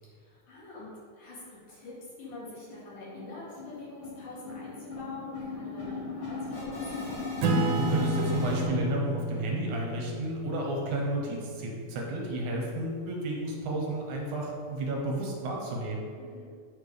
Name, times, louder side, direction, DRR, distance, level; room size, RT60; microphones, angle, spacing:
voice 1, 0.0-6.8 16.2-16.5, left 2 dB, 75° left, -7 dB, 3.5 m, -45 dB
sound 1, 1.4-1.5 1.8-1.9 2.2-2.4 2.7-8.6, left 3 dB, 45° left, 3.0 m, -37 dB
Acoustic guitar / Strum, 7.4-12.4, right 1 dB, 90° right, 2.2 m, -31 dB
voice 2, 7.7-16.1, right 1 dB, 70° right, -1 dB, 2.4 m, -32 dB
8.9 x 4.5 x 5.0 m, 2.1 s
omnidirectional pair, 3.6 m